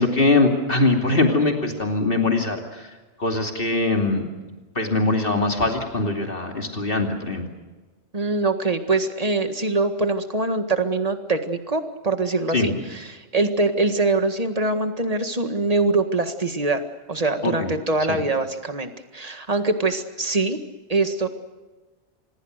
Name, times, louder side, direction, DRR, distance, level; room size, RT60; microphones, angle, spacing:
voice 1, 0.0-2.9 3.2-4.2 4.7-7.4 12.5-12.8 17.4-17.7 18.1-18.2, left 2 dB, 55° left, 3 dB, 2.9 m, -22 dB
voice 2, 8.1-16.8 17.1-20.6 20.9-21.3, right 3 dB, 35° right, 7 dB, 1.9 m, -23 dB
26.0 x 21.0 x 6.6 m, 1.2 s
omnidirectional pair, 1.2 m